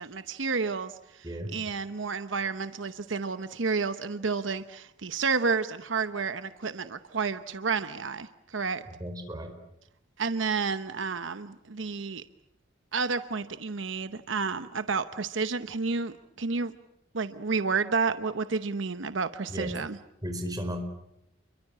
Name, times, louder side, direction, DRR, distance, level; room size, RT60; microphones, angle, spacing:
voice 1, 0.0-1.2 1.5-8.8 10.2-12.2 12.9-16.7 17.1-20.0, right 4 dB, 75° right, 11 dB, 0.9 m, -30 dB
voice 2, 1.2-1.5 8.9-9.5 19.5-19.8 20.2-20.8, equal, 20° right, 5 dB, 4.6 m, -35 dB
29.5 x 23.0 x 7.5 m, 0.83 s
head